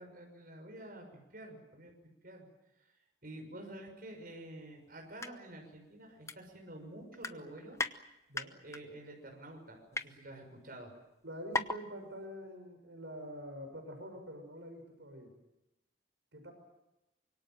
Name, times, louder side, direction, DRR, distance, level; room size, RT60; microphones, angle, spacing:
voice 1, 0.0-1.9 2.2-2.5 2.8-2.9 3.2-7.8 8.6-10.9, right 1 dB, 50° right, 2 dB, 6.3 m, -49 dB
sound 1, 5.0-5.3 5.7-5.8 6.3-6.8 7.1-7.9 8.3-8.8 9.4-10.1 10.8-10.9 11.1-11.2 11.5-11.8 12.2-12.3, left 3 dB, 15° left, 0.8 m, -36 dB
voice 2, 11.2-15.3 16.3-16.5, equal, 70° right, 5 dB, 6.0 m, -46 dB
25.5 x 23.5 x 7.6 m, 0.91 s
head